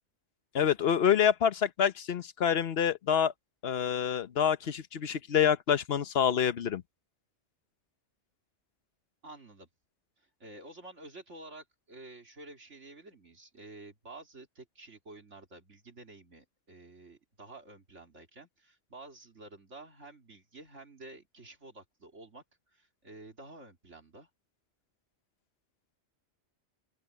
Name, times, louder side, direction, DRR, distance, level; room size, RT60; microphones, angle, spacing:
voice 1, 0.5-3.3 3.6-6.8, left 8 dB, 60° left, 1.1 m, -27 dB
voice 2, 9.2-9.7 10.2-22.4 22.7-24.3, right 2 dB, 80° right, 3.3 m, -50 dB
open air
omnidirectional pair, 1.2 m